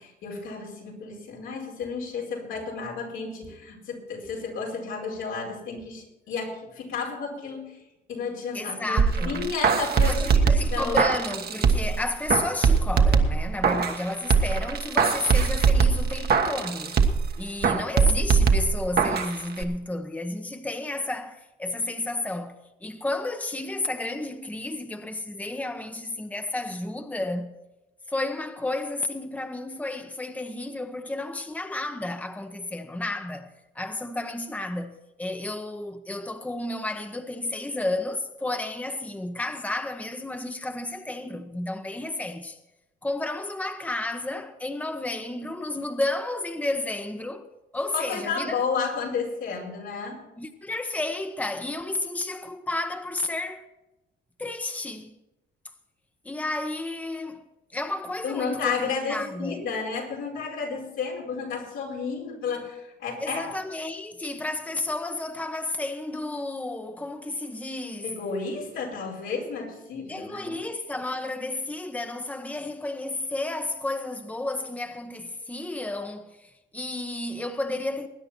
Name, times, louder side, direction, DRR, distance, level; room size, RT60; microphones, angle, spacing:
voice 1, 0.0-7.8 8.1-10.3 10.7-11.1 47.9-50.2 58.2-63.5 68.0-70.6, left 5 dB, 85° left, 5.0 m, -32 dB
voice 2, 8.5-9.5 10.0-17.0 17.4-27.6 28.1-42.6 43.0-47.5 47.7-48.6 50.4-53.7 54.4-55.1 56.2-57.4 57.7-59.6 63.2-68.1 70.1-78.1, left 2 dB, 5° left, 1.0 m, -32 dB
sound 1, 9.0-12.0 12.3-14.0 14.3-17.3 17.6-19.3 19.6-19.7, right 5 dB, 50° right, 1.4 m, -21 dB
20.5 x 9.5 x 4.4 m
cardioid pair, 90°, 20 cm